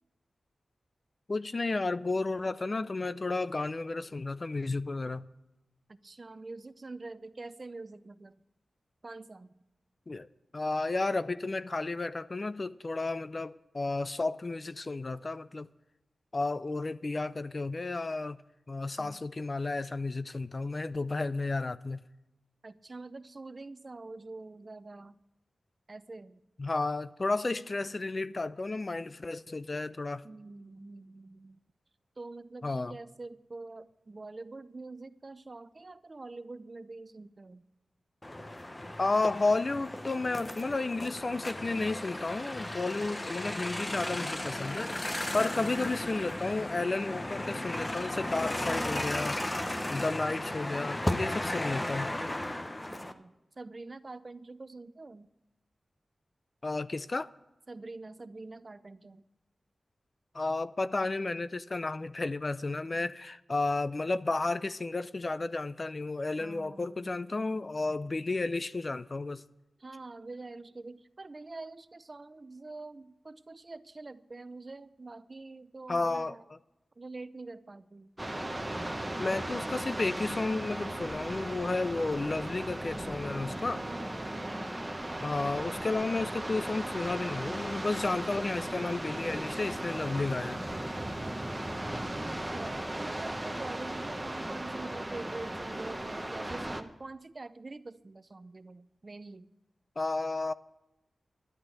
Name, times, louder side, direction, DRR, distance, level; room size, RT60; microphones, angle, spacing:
voice 1, 1.3-5.3 10.1-10.3 10.5-15.7 16.3-18.4 18.7-22.0 26.6-30.2 32.6-33.0 39.0-44.9 45.3-49.4 49.9-52.1 56.6-57.3 60.3-69.4 75.9-76.6 79.2-83.8 85.2-90.6 100.0-100.5, left 3 dB, 45° left, 0.5 m, -32 dB
voice 2, 5.9-8.4 9.0-9.6 19.0-19.2 22.6-25.2 25.9-26.4 30.2-31.6 32.2-37.6 45.4-45.7 49.7-50.7 52.9-55.3 57.7-59.2 66.4-67.2 69.8-76.4 77.0-78.1 83.7-84.9 91.2-91.7 92.0-99.5, right 3 dB, 40° right, 0.6 m, -45 dB
sound 1, 38.2-53.1, left 1 dB, 25° left, 0.9 m, -35 dB
sound 2, 78.2-96.8, right 1 dB, 15° right, 1.2 m, -37 dB
12.0 x 8.7 x 7.8 m
cardioid pair, 60°, 0 cm